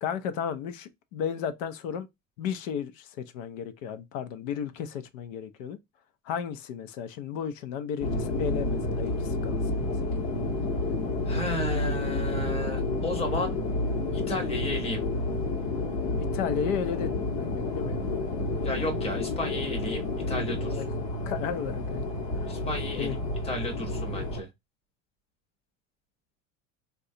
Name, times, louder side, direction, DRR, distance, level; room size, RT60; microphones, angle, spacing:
voice 1, 0.0-2.1 2.4-5.8 6.2-9.9 16.2-18.2 20.7-20.8 21.3-22.1 22.4-22.5 23.0-23.1, left 8 dB, 85° left, 0.7 m, -34 dB
sound 1, 8.0-24.4, left 2 dB, 50° left, 1.0 m, -30 dB
voice 2, 11.2-13.5 14.1-15.0 18.6-20.8 22.5-23.2 23.4-24.5, left 1 dB, 15° left, 0.8 m, -33 dB
3.8 x 2.3 x 2.6 m
cardioid pair, 170°, 38 cm